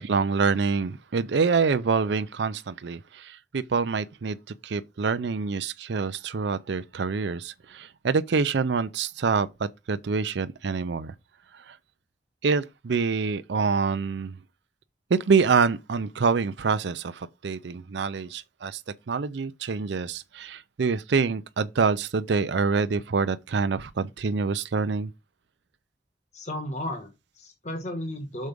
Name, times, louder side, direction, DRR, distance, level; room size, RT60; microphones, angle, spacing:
voice 1, 0.0-4.4 4.6-11.1 11.7-11.8 12.4-14.4 15.1-18.8 19.1-25.1, right 5 dB, 70° right, 0.5 m, -26 dB
voice 2, 26.3-28.5, left 1 dB, 40° left, 1.2 m, -34 dB
6.4 x 4.6 x 5.2 m
head